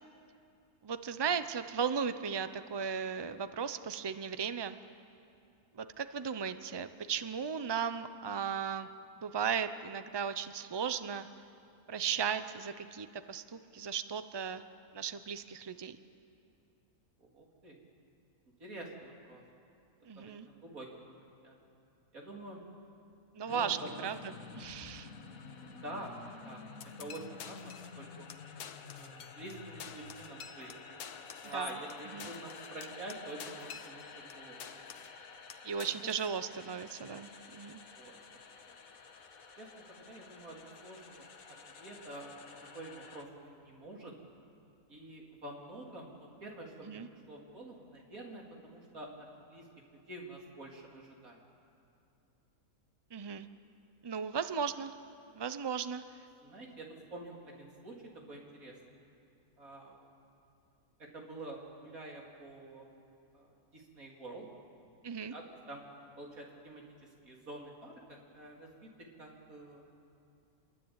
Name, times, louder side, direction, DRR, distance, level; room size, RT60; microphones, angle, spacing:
voice 1, 0.8-4.8 5.7-8.9 9.2-11.3 11.9-14.6 14.9-16.0 20.0-20.5 23.3-23.8 24.0-25.1 31.5-31.7 32.1-32.3 35.6-37.8 46.9-47.1 53.1-53.5 54.0-54.9 55.3-56.0 65.0-65.3, right 7 dB, 25° right, 11 dB, 0.6 m, -36 dB
voice 2, 17.2-17.8 18.6-19.4 20.2-21.1 21.4-21.6 22.1-22.6 23.5-24.1 25.6-26.1 26.4-26.6 27.0-28.3 29.0-30.7 31.4-34.6 35.6-35.8 37.9-38.1 38.7-38.8 39.6-41.2 41.8-43.3 43.6-44.1 44.9-47.0 47.3-49.6 50.1-51.4 56.4-57.9 58.3-58.7 59.6-60.0 61.1-62.8 63.3-64.5 65.3-65.4 65.7-65.8 66.2-66.8 67.2-67.9 68.3-68.9 69.2-69.8, right 1 dB, 65° right, -1 dB, 4.2 m, -47 dB
sound 1, 23.5-43.2, left 5 dB, 70° left, 1.8 m, -51 dB
sound 2, 26.8-28.0 28.3-28.4 28.6-29.5 29.8-34.3 34.6-35.2 35.5-36.3, left 8 dB, 85° left, 1.5 m, -49 dB
27.0 x 22.5 x 9.0 m, 2.6 s
omnidirectional pair, 1.6 m